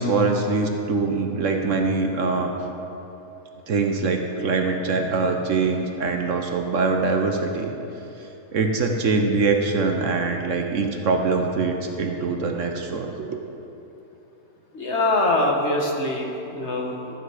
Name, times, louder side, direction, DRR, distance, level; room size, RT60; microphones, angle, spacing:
voice 1, 0.0-2.5 3.7-7.7 8.5-13.4, right 4 dB, 60° right, 4 dB, 1.1 m, -23 dB
voice 2, 14.7-17.2, left 2 dB, 50° left, 0 dB, 1.3 m, -23 dB
12.0 x 9.1 x 4.8 m, 3.0 s
omnidirectional pair, 1.6 m